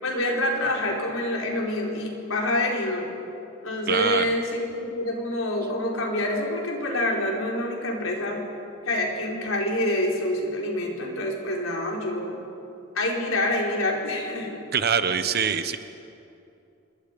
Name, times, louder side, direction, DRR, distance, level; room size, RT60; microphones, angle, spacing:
voice 1, 0.0-3.1 3.6-8.4 8.8-12.4 12.9-14.6, left 1 dB, 90° left, -1 dB, 4.3 m, -27 dB
voice 2, 3.9-4.3 14.7-15.8, right 7 dB, 50° right, 10 dB, 1.0 m, -24 dB
26.0 x 22.0 x 5.3 m, 2.7 s
head